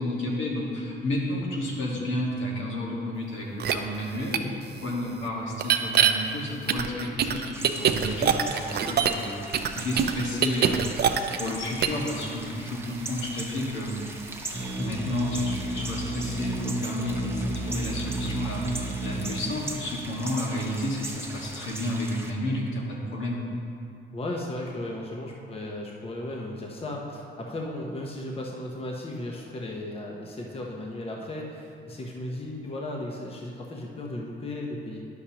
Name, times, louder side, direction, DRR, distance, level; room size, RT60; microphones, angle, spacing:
voice 1, 0.0-4.5 4.8-9.3 9.7-10.8 11.4-14.0 14.8-23.4, left 1 dB, 75° left, -3 dB, 1.6 m, -31 dB
sound 1, 3.6-3.7 4.3-4.4 5.6-6.1 6.7-9.3 9.5-11.5 11.8-12.0, right 8 dB, 55° right, 0.5 m, -23 dB
sound 2, 7.5-22.3, right 2 dB, 10° right, 0.8 m, -40 dB
sound 3, 14.5-19.5, right 2 dB, 75° right, 1.3 m, -32 dB
voice 2, 24.1-35.0, left 1 dB, 30° left, -1 dB, 0.9 m, -35 dB
10.0 x 6.4 x 2.9 m, 2.5 s
cardioid pair, 90°, 20 cm